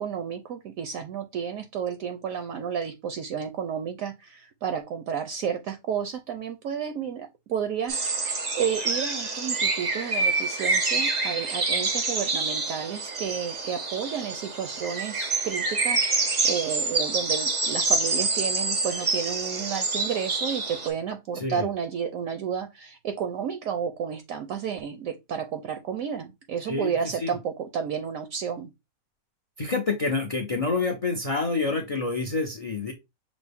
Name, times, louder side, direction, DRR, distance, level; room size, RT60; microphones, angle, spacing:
voice 1, 0.0-28.7, right 7 dB, 70° right, 0.9 m, -31 dB
sound 1, 7.9-20.9, right 3 dB, 45° right, 0.5 m, -27 dB
voice 2, 21.3-21.7 26.7-27.3 29.6-32.9, left 3 dB, 60° left, 0.3 m, -28 dB
6.0 x 2.0 x 3.4 m
omnidirectional pair, 1.6 m